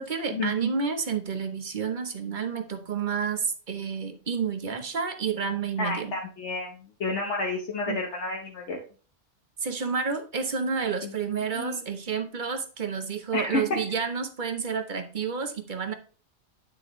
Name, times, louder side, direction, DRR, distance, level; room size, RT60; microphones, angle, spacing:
voice 1, 0.0-6.1 7.9-8.0 9.6-15.9, right 6 dB, 40° right, 7 dB, 1.1 m, -30 dB
voice 2, 5.8-6.7 7.0-8.8 11.0-11.1 11.6-11.8 13.3-13.6, left 3 dB, 70° left, 0 dB, 1.3 m, -30 dB
9.5 x 6.0 x 3.1 m, 0.38 s
omnidirectional pair, 1.3 m